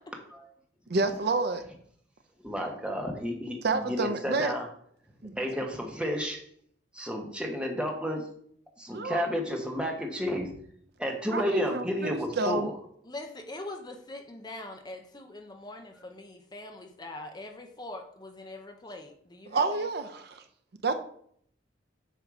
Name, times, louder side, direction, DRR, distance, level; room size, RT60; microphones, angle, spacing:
voice 1, 0.9-1.6 3.6-4.5 5.2-5.4 7.0-7.1 8.9-9.3 11.3-12.7 19.5-20.4 20.8-20.9, right 3 dB, 55° right, 7 dB, 0.6 m, -29 dB
voice 2, 2.4-4.7 5.3-6.4 6.9-8.3 8.8-10.5 11.0-12.7, equal, 5° right, 1 dB, 1.1 m, -31 dB
voice 3, 13.0-19.6, left 2 dB, 20° left, 4 dB, 0.7 m, -43 dB
8.2 x 2.8 x 6.0 m, 0.64 s
head